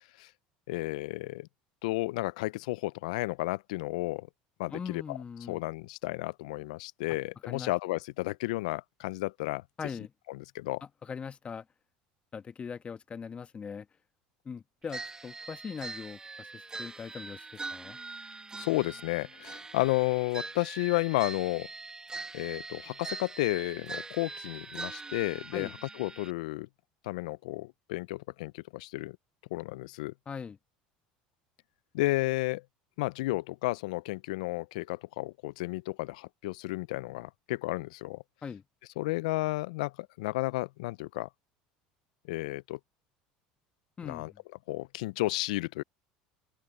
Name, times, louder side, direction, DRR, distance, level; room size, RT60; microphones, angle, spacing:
voice 1, 0.7-1.5 1.8-4.3 4.6-5.2 5.5-9.6 10.3-10.8 18.6-21.7 22.3-25.7 25.9-26.7 27.0-29.2 29.5-30.1 31.9-32.6 33.0-38.2 39.0-41.3 42.3-42.8 44.0-44.3 44.7-45.8, left 21 dB, 80° left, 0.4 m, -32 dB
voice 2, 4.7-5.6 7.5-7.7 9.8-10.1 11.0-11.6 12.3-13.9 14.4-18.0 25.5-25.7 30.3-30.6 38.4-38.6 44.0-44.4, left 6 dB, 30° left, 1.5 m, -41 dB
sound 1, 14.9-26.3, right 3 dB, 20° right, 1.9 m, -42 dB
hypercardioid pair, 85°, 4 cm